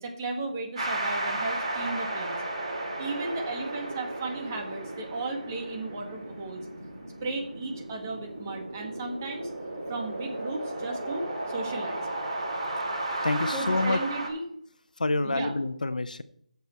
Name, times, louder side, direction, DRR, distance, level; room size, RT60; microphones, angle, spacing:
voice 1, 0.0-2.4 3.0-6.7 7.2-9.5 9.9-12.1 13.5-14.4 15.2-15.5, right 3 dB, 25° right, 2 dB, 1.9 m, -35 dB
sound 1, 0.7-14.3, right 2 dB, 50° right, 4.8 m, -34 dB
voice 2, 13.2-14.0 15.0-16.2, left 2 dB, 80° left, 13 dB, 0.9 m, -27 dB
14.5 x 7.1 x 4.5 m, 0.69 s
figure-of-eight pair, 165°, 4 cm